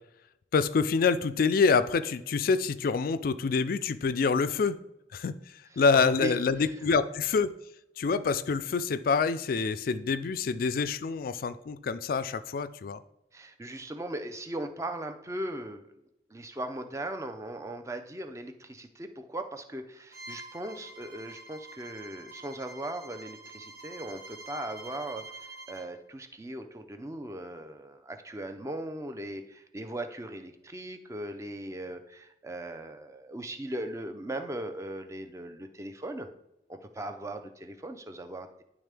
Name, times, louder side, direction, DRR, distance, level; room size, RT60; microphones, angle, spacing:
voice 1, 0.5-4.8 5.1-5.3 5.8-7.5 8.0-13.0, left 5 dB, 55° left, 14 dB, 0.4 m, -26 dB
voice 2, 5.9-6.4 13.3-15.9 16.3-36.3 36.7-38.5, right 1 dB, 15° right, 7 dB, 0.5 m, -38 dB
Bowed string instrument, 20.1-25.9, right 2 dB, 55° right, 1.4 m, -47 dB
10.5 x 3.6 x 3.4 m, 0.89 s
head